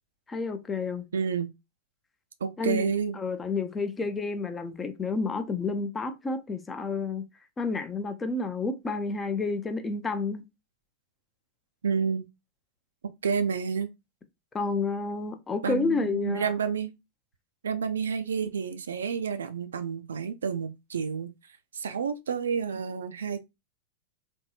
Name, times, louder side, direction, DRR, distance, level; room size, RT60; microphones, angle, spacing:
voice 1, 0.3-1.1 2.6-7.2 7.6-10.4 14.5-16.5, left 4 dB, 15° left, 0.4 m, -30 dB
voice 2, 1.1-1.5 2.4-3.2 11.8-12.3 13.2-13.9 15.6-16.9 17.6-21.3 21.7-23.4, right 6 dB, 70° right, 0.3 m, -29 dB
3.5 x 2.3 x 2.7 m
figure-of-eight pair, 90°, 0 cm